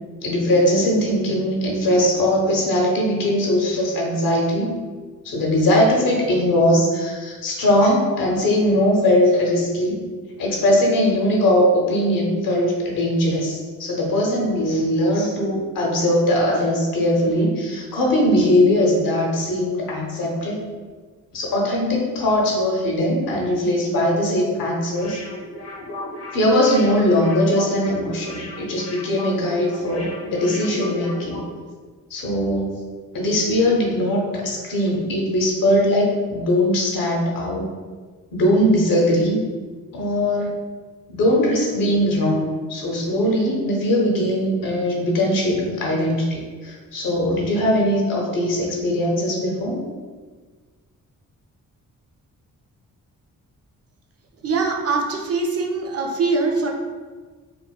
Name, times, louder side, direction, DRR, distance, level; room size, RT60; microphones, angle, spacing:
voice 1, 0.2-4.7 5.2-10.0 10.4-20.6 21.3-25.2 26.3-31.4 32.1-32.7 33.1-37.6 38.3-39.4 39.9-40.6 41.1-49.8, left 1 dB, 90° left, -2 dB, 0.8 m, -20 dB
sound 1, 24.9-31.5 31.8-31.9, left 1 dB, 50° left, 0.5 m, -35 dB
voice 2, 54.4-56.7, right 4 dB, 50° right, 2 dB, 0.5 m, -22 dB
4.2 x 2.1 x 2.3 m, 1.5 s
wide cardioid pair, 130°, 33 cm